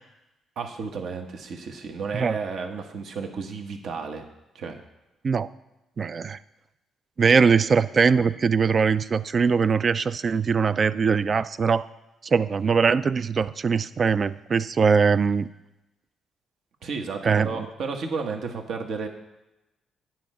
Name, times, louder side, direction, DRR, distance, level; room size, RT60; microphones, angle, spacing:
voice 1, 0.6-4.2 4.5-4.8 7.3-7.4 16.8-19.1, right 5 dB, 70° right, 4 dB, 1.1 m, -32 dB
voice 2, 6.0-6.4 7.2-11.9 12.2-15.5 17.2-17.5, right 5 dB, 40° right, 15 dB, 0.3 m, -21 dB
9.3 x 4.4 x 6.2 m, 0.95 s
cardioid pair, 90°, 0 cm